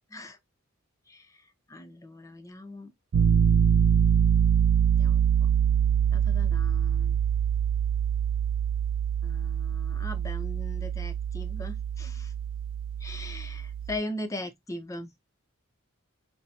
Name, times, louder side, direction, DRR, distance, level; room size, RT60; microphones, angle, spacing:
voice 1, 1.7-2.9 4.9-5.2 6.1-7.2 9.2-12.3 13.0-15.1, left 1 dB, 15° left, 0.5 m, -39 dB
Piano, 3.1-14.0, right 8 dB, 75° right, 0.4 m, -25 dB
5.6 x 2.1 x 2.6 m
head